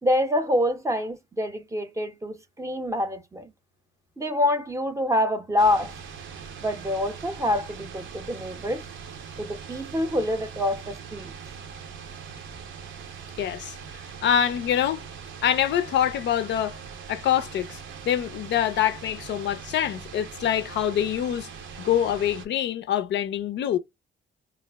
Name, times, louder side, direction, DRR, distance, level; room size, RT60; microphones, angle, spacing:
voice 1, 0.0-3.5 4.2-5.9 6.6-8.8 9.4-11.3, left 1 dB, 15° right, 0.6 m, -26 dB
sound 1, 5.6-22.5, right 6 dB, 75° right, 0.6 m, -41 dB
voice 2, 13.4-13.8 14.2-15.0 15.4-16.8 17.1-17.8 18.1-21.5 21.8-23.8, left 10 dB, 65° left, 0.4 m, -25 dB
2.3 x 2.1 x 3.3 m
cardioid pair, 90°, 20 cm